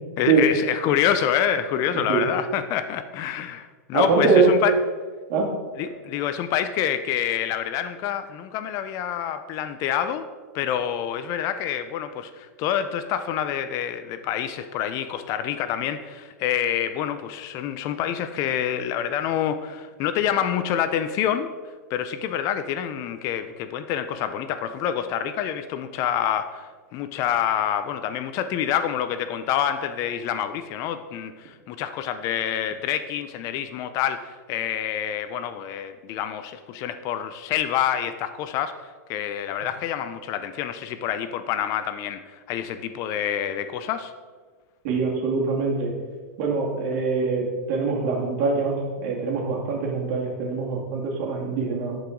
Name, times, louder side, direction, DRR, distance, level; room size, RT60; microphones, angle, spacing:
voice 1, 0.2-4.7 5.8-10.3 10.5-21.5 21.9-44.1, left 9 dB, 40° left, 10 dB, 0.4 m, -27 dB
voice 2, 3.9-4.5 5.3-5.5 44.8-45.9 46.4-52.0, right 4 dB, 50° right, -2 dB, 2.2 m, -23 dB
10.5 x 4.8 x 3.8 m, 1.5 s
hypercardioid pair, 135°, 9 cm